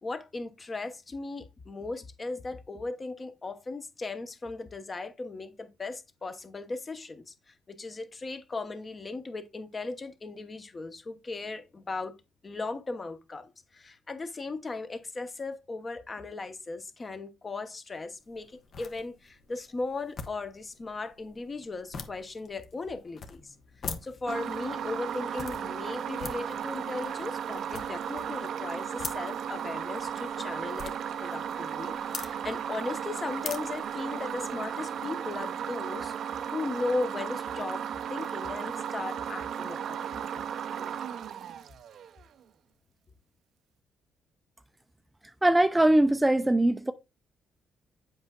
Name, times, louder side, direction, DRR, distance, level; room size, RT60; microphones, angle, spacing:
voice 1, 0.0-12.1 12.4-23.5 24.0-36.1 36.4-37.8 38.1-40.2 40.8-40.9, left 3 dB, 30° left, 1.0 m, -37 dB
sound 1, 18.2-34.7, left 5 dB, 55° left, 1.0 m, -45 dB
sound 2, 24.3-42.2, right 8 dB, 65° right, 0.5 m, -35 dB
voice 2, 45.4-46.9, right 1 dB, 10° right, 0.4 m, -21 dB
7.8 x 5.4 x 2.3 m
cardioid pair, 90°, 0 cm